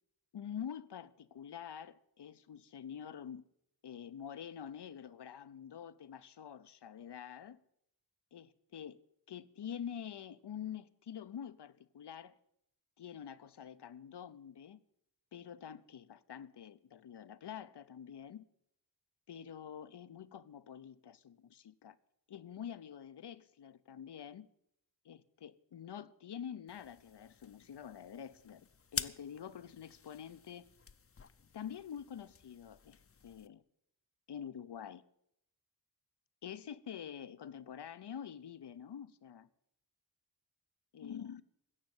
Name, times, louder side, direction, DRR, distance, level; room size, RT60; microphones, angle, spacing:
voice 1, 0.3-3.4 3.8-7.6 8.3-9.0 9.3-12.4 13.0-14.8 15.3-18.4 19.3-22.0 22.3-24.5 25.0-28.7 28.9-30.7 31.5-33.0 33.2-33.6 34.3-35.0 36.4-39.5 40.9-41.4, left 8 dB, 85° left, 0.7 m, -47 dB
sound 1, 26.7-33.5, left 5 dB, 35° left, 0.6 m, -48 dB
16.5 x 6.5 x 9.4 m
wide cardioid pair, 90°, 40 cm